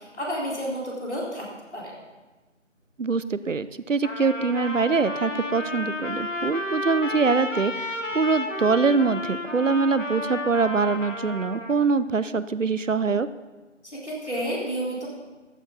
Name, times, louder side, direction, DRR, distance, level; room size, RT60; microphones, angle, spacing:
voice 1, 0.0-1.5 1.7-1.9 13.8-15.1, equal, 60° left, -4 dB, 4.2 m, -30 dB
voice 2, 3.0-13.3, right 4 dB, 75° right, 15 dB, 0.7 m, -24 dB
Trumpet, 4.0-11.8, left 1 dB, 75° left, 1.7 m, -32 dB
14.5 x 10.5 x 4.0 m, 1.2 s
figure-of-eight pair, 180°, 38 cm